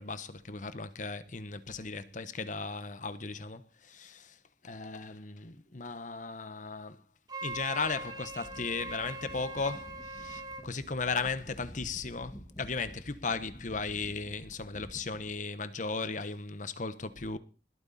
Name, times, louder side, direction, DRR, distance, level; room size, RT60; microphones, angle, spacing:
voice 1, 0.0-4.4 4.6-7.0 7.4-17.4, left 4 dB, 45° left, 1.1 m, -36 dB
Wind instrument woodwind instrument, 7.3-10.7, right 2 dB, 20° right, 2.6 m, -41 dB
sound 1, 7.5-15.3, equal, 25° left, 1.9 m, -50 dB
20.5 x 9.0 x 4.2 m
head